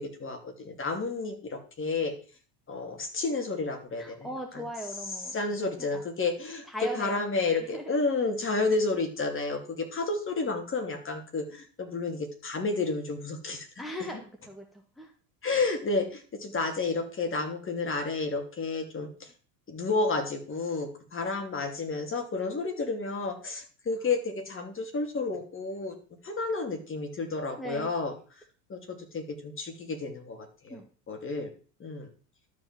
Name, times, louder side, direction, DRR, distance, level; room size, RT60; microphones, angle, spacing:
voice 1, 0.0-2.1 2.7-4.3 4.5-4.6 5.3-13.7 15.4-19.1 19.7-25.9 26.2-28.1 28.7-30.8 31.1-31.5 31.8-32.1, left 3 dB, 25° left, 5 dB, 2.9 m, -31 dB
voice 2, 4.0-5.4 5.8-6.0 6.7-8.0 13.8-15.1 27.6-27.9 30.7-30.8, equal, ahead, 2 dB, 1.8 m, -39 dB
12.5 x 5.2 x 7.6 m, 0.39 s
supercardioid pair, 110°, 47 cm